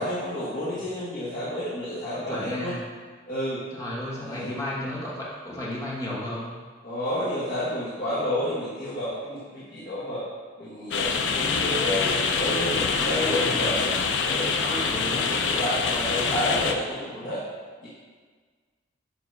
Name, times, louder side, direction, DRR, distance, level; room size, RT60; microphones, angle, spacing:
voice 1, 0.0-2.7 3.3-3.6 4.2-4.5 6.8-10.2 10.6-13.8 14.2-17.4 17.8-17.9, left 1 dB, 45° left, -11 dB, 1.4 m, -30 dB
voice 2, 2.1-2.9 3.7-6.5 13.1-13.8 14.6-15.2, left 1 dB, 15° left, -6 dB, 1.1 m, -33 dB
sound 1, 10.9-16.7, left 5 dB, 70° left, 0.4 m, -25 dB
7.1 x 2.9 x 4.5 m, 1.5 s
head